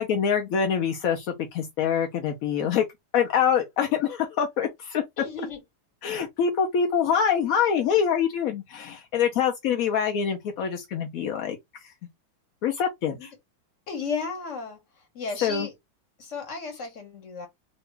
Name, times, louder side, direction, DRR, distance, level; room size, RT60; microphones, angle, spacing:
voice 1, 0.0-2.9 3.1-5.0 6.0-11.9 12.6-13.3 15.4-15.7, left 7 dB, 65° left, 0.9 m, -25 dB
voice 2, 5.2-5.6 13.2-13.3 13.9-14.8 15.1-15.7 16.2-17.5, left 4 dB, 45° left, 1.4 m, -33 dB
2.9 x 2.7 x 3.2 m
omnidirectional pair, 2.0 m